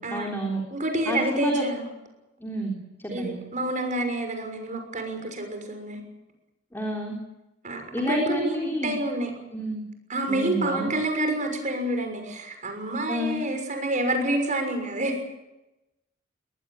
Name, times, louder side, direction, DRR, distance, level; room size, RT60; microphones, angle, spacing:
voice 1, 0.1-0.6 1.1-1.7 2.4-3.4 6.7-7.2 7.9-9.0 9.5-9.8 10.3-10.9 13.1-13.4, equal, 10° left, 0 dB, 3.6 m, -29 dB
voice 2, 0.7-1.9 3.1-6.0 7.6-9.3 10.1-15.2, right 1 dB, 40° right, 4 dB, 6.3 m, -28 dB
23.5 x 18.5 x 8.8 m, 0.97 s
head